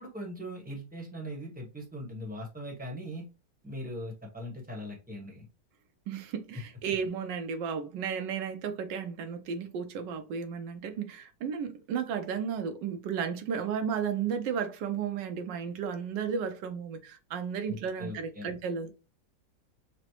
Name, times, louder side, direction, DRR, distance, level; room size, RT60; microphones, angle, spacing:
voice 1, 0.0-3.3 3.6-5.5 17.7-18.5, equal, 5° right, 0.7 m, -40 dB
voice 2, 6.1-18.9, right 7 dB, 80° right, 1.3 m, -33 dB
5.9 x 2.0 x 3.0 m
omnidirectional pair, 1.9 m